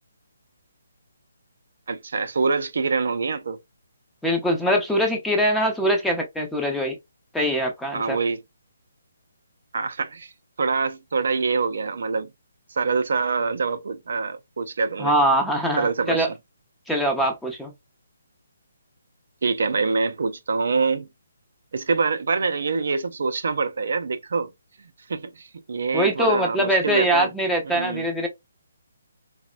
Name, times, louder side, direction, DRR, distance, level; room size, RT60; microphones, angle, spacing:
voice 1, 1.9-3.6 7.9-8.4 9.7-10.3 10.6-12.3 12.7-15.1 15.8-16.3 19.4-21.1 21.7-24.5 25.1-27.3 27.7-28.0, right 4 dB, 65° right, 0.4 m, -25 dB
voice 2, 4.2-7.0 7.3-8.2 15.0-16.3 16.9-17.7 25.9-28.3, equal, 5° left, 0.6 m, -22 dB
4.0 x 2.0 x 2.3 m
hypercardioid pair, 155°, 0 cm